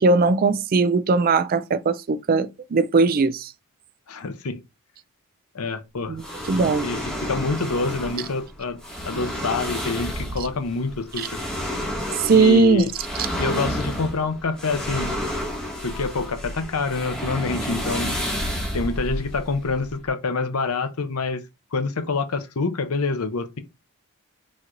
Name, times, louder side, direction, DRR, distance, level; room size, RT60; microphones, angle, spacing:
voice 1, 0.0-3.5 6.1-6.2 6.5-6.9 11.2-11.3 12.2-12.9, right 4 dB, 40° right, 0.4 m, -19 dB
voice 2, 4.1-4.6 5.5-6.2 6.8-8.8 9.0-11.4 12.3-12.9 13.4-15.1 15.8-18.1 18.7-21.4 21.7-23.6, left 3 dB, 80° left, 0.7 m, -26 dB
sound 1, 6.2-20.1, equal, 5° left, 1.8 m, -30 dB
4.4 x 4.2 x 2.5 m
head